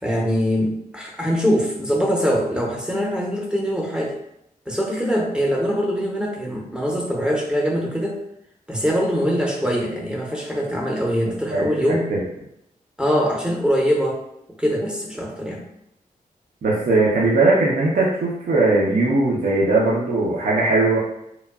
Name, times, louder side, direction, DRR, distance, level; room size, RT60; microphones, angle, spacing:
voice 1, 0.0-4.1 4.7-8.2 8.7-12.1 13.0-14.2 14.6-15.6, equal, 5° right, -2 dB, 0.7 m, -23 dB
voice 2, 16.6-21.0, right 2 dB, 65° right, -5 dB, 0.6 m, -19 dB
2.9 x 2.2 x 2.3 m, 0.79 s
cardioid pair, 80°, 15 cm